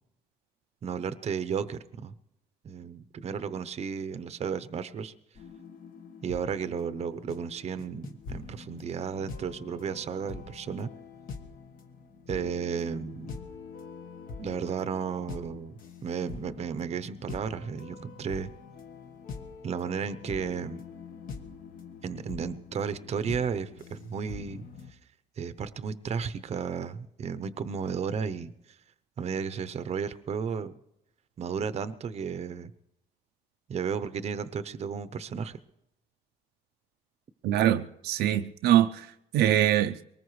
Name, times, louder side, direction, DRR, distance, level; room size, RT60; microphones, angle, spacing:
voice 1, 0.8-2.1 2.6-5.1 6.2-10.9 12.3-13.3 14.4-18.5 19.6-20.8 22.0-24.6 25.4-28.5 29.2-30.7 31.4-32.7 33.7-35.6, right 6 dB, 40° right, 0.7 m, -33 dB
sound 1, 5.3-24.9, left 5 dB, 55° left, 1.4 m, -44 dB
voice 2, 37.4-39.1 39.3-40.0, right 12 dB, 80° right, 0.6 m, -23 dB
23.0 x 19.5 x 3.2 m
cardioid pair, 110°, 17 cm